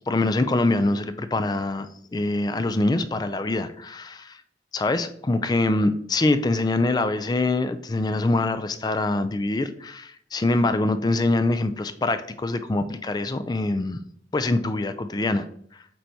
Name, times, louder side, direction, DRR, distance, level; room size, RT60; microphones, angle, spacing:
voice 1, 0.1-4.4 4.7-14.0 14.3-15.5, left 2 dB, 25° left, 11 dB, 0.3 m, -24 dB
7.7 x 4.5 x 2.7 m, 0.66 s
head